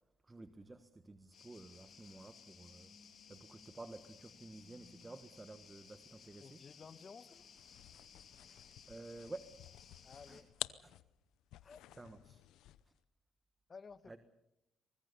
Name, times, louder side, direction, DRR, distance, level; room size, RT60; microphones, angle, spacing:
voice 1, 0.2-3.0 3.3-6.6 8.9-9.5 10.3-10.4 10.8-11.0 12.0-12.4 14.1-14.2, right 2 dB, 20° right, 10 dB, 1.4 m, -52 dB
sound 1, 1.3-10.4, left 6 dB, 55° left, 3.7 m, -59 dB
voice 2, 6.4-7.4 10.0-10.5 11.6-11.8 13.7-14.2, left 5 dB, 40° left, 13 dB, 1.4 m, -54 dB
sound 2, 7.6-13.0, left 14 dB, 90° left, 0.8 m, -50 dB
24.0 x 21.0 x 7.0 m, 0.86 s
cardioid pair, 90°, 0 cm